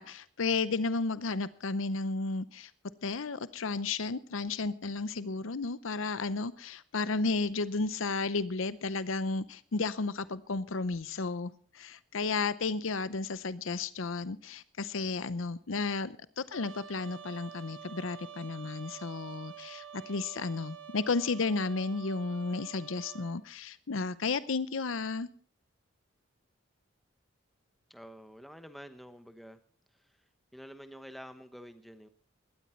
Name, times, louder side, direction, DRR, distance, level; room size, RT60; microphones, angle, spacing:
voice 1, 0.0-2.7 3.0-25.3, left 3 dB, 75° left, 15 dB, 0.7 m, -33 dB
Trumpet, 16.5-23.4, right 8 dB, 75° right, 1.1 m, -48 dB
voice 2, 27.9-29.6 29.9-30.1 30.5-32.1, equal, ahead, 9 dB, 1.0 m, -48 dB
18.0 x 12.5 x 4.4 m, 0.43 s
head